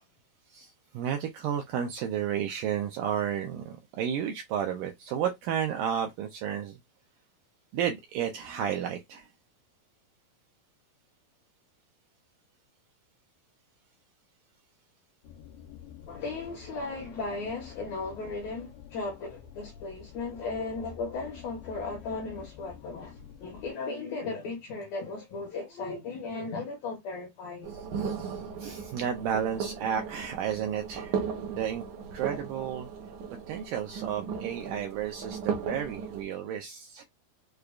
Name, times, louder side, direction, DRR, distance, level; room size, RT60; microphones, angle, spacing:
voice 1, 0.5-6.8 7.7-9.3 27.7-31.8 32.1-32.9 33.5-37.0, right 9 dB, 90° right, 1.9 m, -32 dB
sound 1, 15.2-23.7, left 9 dB, 90° left, 2.6 m, -49 dB
voice 2, 16.1-27.8, left 3 dB, 75° left, 1.7 m, -36 dB
sound 2, 27.6-36.2, right 6 dB, 70° right, 2.0 m, -36 dB
6.5 x 2.3 x 2.3 m
omnidirectional pair, 4.3 m